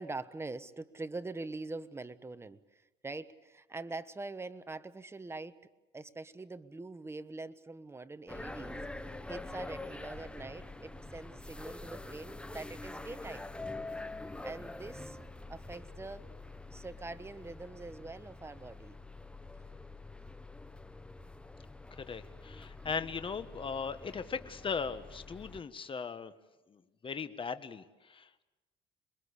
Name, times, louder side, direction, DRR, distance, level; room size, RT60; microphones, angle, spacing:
voice 1, 0.0-5.6 5.9-8.8 9.3-13.5 14.4-15.2 15.5-16.3 16.7-18.9, right 3 dB, 15° right, 12 dB, 1.1 m, -44 dB
sound 1, 8.3-25.6, left 2 dB, 5° left, 1.1 m, -46 dB
voice 2, 21.9-26.3 26.7-28.4, left 5 dB, 30° left, 11 dB, 1.5 m, -38 dB
27.5 x 21.5 x 8.4 m, 1.1 s
cardioid pair, 110°, 17 cm